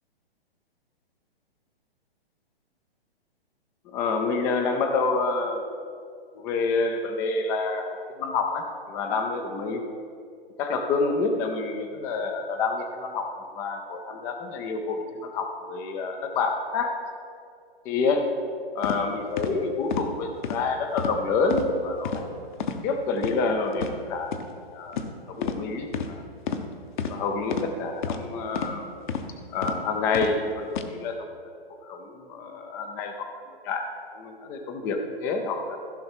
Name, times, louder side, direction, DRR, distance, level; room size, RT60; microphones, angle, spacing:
voice 1, 3.9-5.6 6.3-9.9 10.6-13.3 13.5-17.0 17.9-18.4 18.8-22.2 22.8-24.3 24.7-25.0 25.3-26.2 27.1-28.9 29.5-31.3 31.8-33.3 33.6-33.9 34.1-35.8, left 4 dB, 10° left, 5 dB, 0.3 m, -28 dB
sound 1, 18.8-19.0 19.4-19.5 19.9-20.1 20.4-20.6 21.0-21.2 21.5-21.7 22.0-22.2 22.6-22.8 23.2-23.3 23.7-23.9 24.3-24.4 24.9-25.1 25.4-25.6 25.9-26.1 26.5-26.6 27.0-27.1 27.5-27.7 28.0-28.2 28.5-28.7 29.1-29.3 29.6-29.8 30.1-30.3 30.7-30.9, left 7 dB, 50° left, 0.9 m, -30 dB
15.0 x 5.6 x 4.4 m, 2.3 s
figure-of-eight pair, 130°, 30 cm